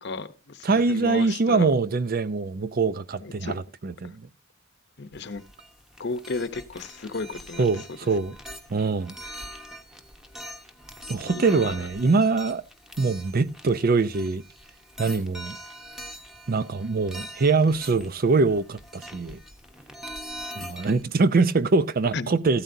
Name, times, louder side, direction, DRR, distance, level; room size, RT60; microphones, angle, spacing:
voice 1, 0.0-1.7 3.2-3.5 5.0-5.4 6.0-7.7 11.2-11.8 22.1-22.4, left 3 dB, 55° left, 0.8 m, -33 dB
voice 2, 0.6-4.2 7.6-8.4 8.7-9.1 11.1-12.6 13.0-14.4 15.0-15.6 16.5-19.4 20.6-22.6, right 4 dB, 45° right, 0.5 m, -23 dB
sound 1, 5.1-21.0, equal, ahead, 1.0 m, -43 dB
15.0 x 13.0 x 2.7 m
head